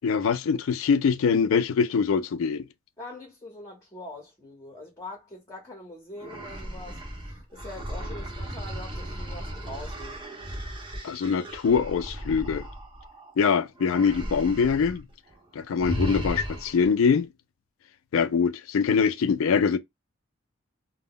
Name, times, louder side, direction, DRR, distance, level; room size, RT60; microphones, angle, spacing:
voice 1, 0.0-2.7 11.0-12.6 13.4-15.1 15.5-17.3 18.1-19.8, left 6 dB, 70° left, 0.3 m, -23 dB
voice 2, 3.0-10.2, left 2 dB, 15° left, 0.7 m, -43 dB
sound 1, 6.2-13.3 13.8-15.0 15.3-15.4 15.8-16.9, right 1 dB, 25° right, 0.7 m, -36 dB
2.1 x 2.0 x 3.6 m
head